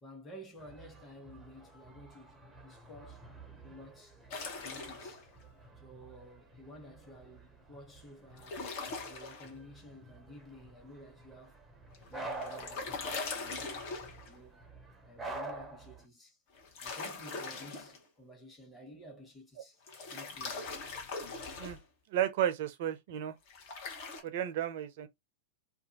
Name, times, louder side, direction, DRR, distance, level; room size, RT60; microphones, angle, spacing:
voice 1, 0.0-3.3 3.6-4.2 4.6-5.3 5.8-8.6 9.1-11.6 12.1-13.8 14.3-14.6 15.1-16.4 16.8-19.8 20.1-20.6, equal, 15° left, 1.1 m, -52 dB
sound 1, 0.6-16.0, right 2 dB, 10° right, 0.6 m, -49 dB
sound 2, 4.3-5.2 8.4-9.5 11.9-14.4 16.5-18.0 19.9-21.8 23.5-24.2, left 4 dB, 45° left, 0.9 m, -41 dB
voice 2, 22.1-23.3 24.2-25.1, right 11 dB, 50° right, 0.5 m, -33 dB
2.5 x 2.2 x 2.8 m
figure-of-eight pair, 95°, 0 cm